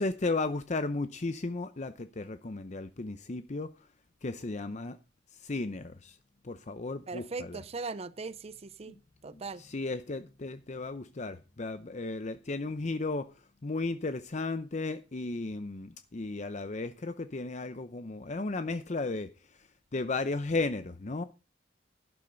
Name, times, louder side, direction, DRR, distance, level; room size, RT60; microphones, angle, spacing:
voice 1, 0.0-3.9 4.2-5.0 5.3-6.2 6.4-7.6 8.9-9.0 9.3-21.2, left 3 dB, 40° left, 0.7 m, -35 dB
voice 2, 7.1-9.0 9.2-9.6, right 4 dB, 35° right, 0.6 m, -39 dB
12.0 x 12.0 x 3.9 m
head